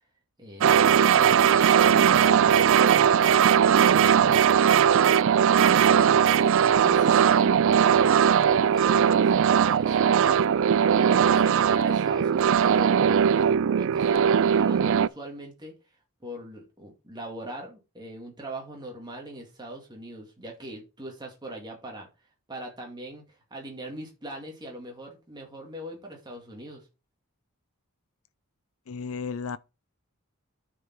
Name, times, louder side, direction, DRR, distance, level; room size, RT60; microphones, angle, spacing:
voice 1, 0.4-4.5 6.6-10.5 10.8-15.7 16.2-22.1 22.5-23.2 23.5-26.9, right 1 dB, 20° right, 2.0 m, -41 dB
sound 1, 0.6-15.1, right 8 dB, 60° right, 0.4 m, -19 dB
voice 2, 28.9-29.6, left 5 dB, 70° left, 0.5 m, -33 dB
9.7 x 5.1 x 4.6 m
head